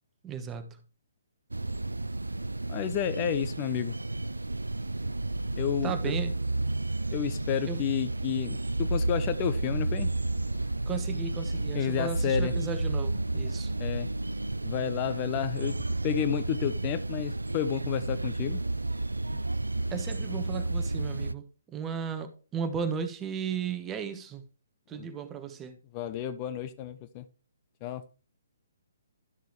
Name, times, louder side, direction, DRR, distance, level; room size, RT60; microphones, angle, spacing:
voice 1, 0.2-0.8 5.8-6.3 7.6-7.8 10.9-13.7 19.9-21.4 21.7-24.4 24.9-25.7, right 7 dB, 15° right, 1.1 m, -35 dB
sound 1, 1.5-21.3, right 2 dB, 85° right, 0.4 m, -31 dB
voice 2, 2.7-4.0 5.6-6.2 7.1-10.1 11.7-12.6 13.8-14.1 14.6-18.6 24.9-25.1 25.9-27.2 27.8-28.0, left 10 dB, 30° left, 0.6 m, -31 dB
12.5 x 6.6 x 3.1 m
figure-of-eight pair, 135°, 0 cm